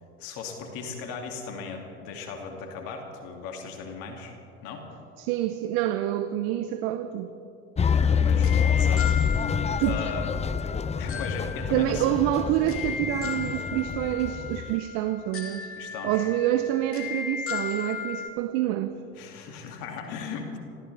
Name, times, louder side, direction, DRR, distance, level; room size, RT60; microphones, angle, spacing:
voice 1, 0.2-4.4 4.6-4.9 8.2-9.2 9.8-10.3 11.0-12.2 13.2-13.4 15.8-16.3 19.2-20.6, left 5 dB, 65° left, 2 dB, 2.6 m, -37 dB
voice 2, 5.2-7.3 9.8-10.0 11.7-15.7 16.0-19.0, right 13 dB, 65° right, 10 dB, 0.9 m, -27 dB
sound 1, 7.8-18.3, left 6 dB, 35° left, 1.9 m, -36 dB
sound 2, 7.8-14.8, left 7 dB, 20° left, 0.6 m, -26 dB
26.0 x 14.5 x 3.4 m, 2.6 s
hypercardioid pair, 65°, 37 cm